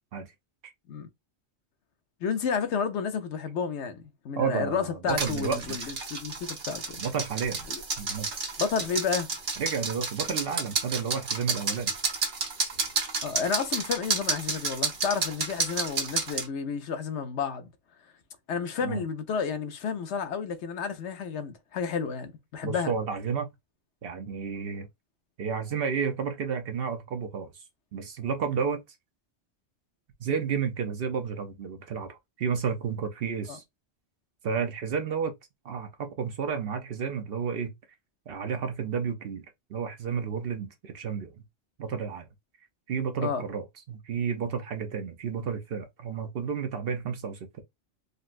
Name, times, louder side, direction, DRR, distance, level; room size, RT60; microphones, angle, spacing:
voice 1, 2.2-7.0 7.7-7.8 8.6-9.3 13.2-17.7 18.5-22.9 33.5-33.6 43.2-43.4, left 6 dB, 80° left, 0.9 m, -31 dB
voice 2, 4.4-5.9 7.0-7.6 8.0-8.3 9.6-11.9 18.8-19.0 22.6-23.5 24.0-24.9 25.4-27.5 27.9-28.8 30.2-33.6 34.4-35.3 35.6-37.7 38.3-39.4 39.7-41.3 41.8-42.3 42.9-47.6, right 6 dB, 60° right, 0.8 m, -31 dB
sound 1, 5.1-16.5, right 4 dB, 80° right, 1.2 m, -31 dB
3.8 x 2.2 x 2.4 m
omnidirectional pair, 1.2 m